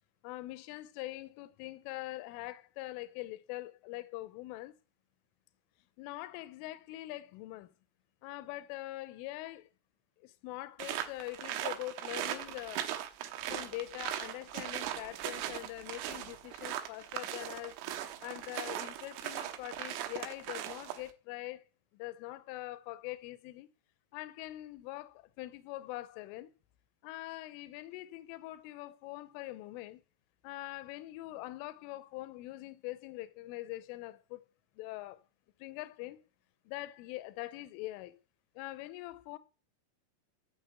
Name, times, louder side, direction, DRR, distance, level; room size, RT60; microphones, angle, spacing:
voice 1, 0.2-4.7 6.0-7.7 8.2-9.7 10.2-12.9 13.5-17.8 18.2-21.6 21.9-23.7 24.1-26.5 27.0-30.0 30.4-34.4 34.8-35.2 35.6-36.2 36.7-38.2 38.6-39.4, left 17 dB, 80° left, 3.2 m, -43 dB
sound 1, 10.8-21.1, right 11 dB, 85° right, 3.8 m, -39 dB
14.5 x 6.3 x 8.2 m
omnidirectional pair, 5.9 m